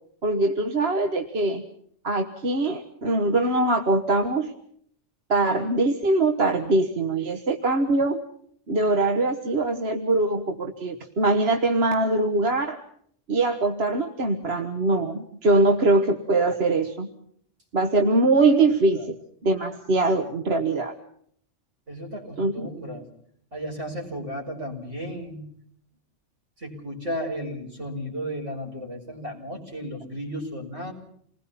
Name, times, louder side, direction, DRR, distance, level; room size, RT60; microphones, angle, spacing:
voice 1, 0.2-1.6 2.0-4.5 5.3-8.2 8.7-12.8 13.3-17.1 17.7-19.0 19.4-20.9 22.4-22.7, right 2 dB, 55° right, 5 dB, 1.6 m, -22 dB
voice 2, 21.9-23.1 23.5-25.5 26.6-30.9, equal, 70° right, 1 dB, 5.9 m, -34 dB
28.5 x 20.5 x 5.8 m, 0.64 s
omnidirectional pair, 1.3 m